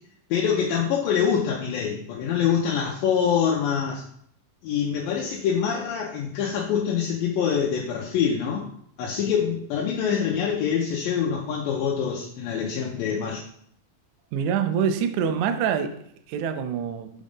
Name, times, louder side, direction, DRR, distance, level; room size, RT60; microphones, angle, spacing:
voice 1, 0.3-4.0 4.6-8.7 9.0-13.4, left 7 dB, 80° left, -3 dB, 2.5 m, -25 dB
voice 2, 14.3-16.0 16.3-17.1, right 7 dB, 85° right, 8 dB, 1.7 m, -25 dB
6.1 x 5.2 x 3.5 m, 0.67 s
omnidirectional pair, 4.1 m